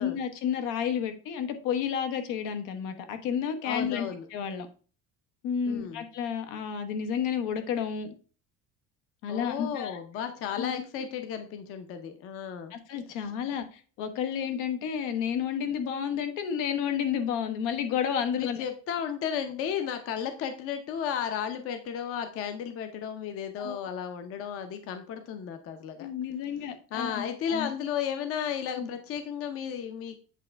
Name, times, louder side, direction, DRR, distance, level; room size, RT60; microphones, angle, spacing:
voice 1, 0.0-4.1 4.3-4.7 5.4-8.1 9.2-10.0 10.6-10.7 12.7-18.6 23.6-23.8 26.0-27.7 28.8-28.9, left 8 dB, 80° left, 8 dB, 1.1 m, -31 dB
voice 2, 3.6-4.3 5.7-6.0 9.3-12.7 13.1-13.3 18.4-26.1 26.9-30.2, left 8 dB, 50° left, 7 dB, 0.7 m, -34 dB
8.3 x 3.3 x 4.4 m, 0.39 s
cardioid pair, 175°, 30 cm